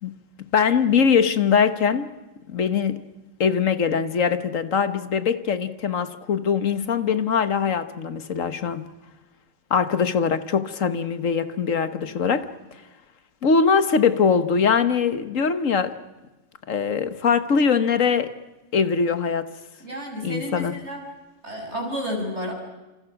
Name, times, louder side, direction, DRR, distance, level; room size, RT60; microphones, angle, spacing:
voice 1, 0.4-2.1 2.5-3.0 3.4-8.8 9.7-12.5 13.4-16.0 16.7-18.4 18.7-19.6 20.2-20.8, left 6 dB, 80° left, 1.7 m, -22 dB
voice 2, 19.8-21.0 21.4-22.5, equal, 60° right, 6.5 m, -31 dB
27.5 x 27.5 x 6.0 m
omnidirectional pair, 1.3 m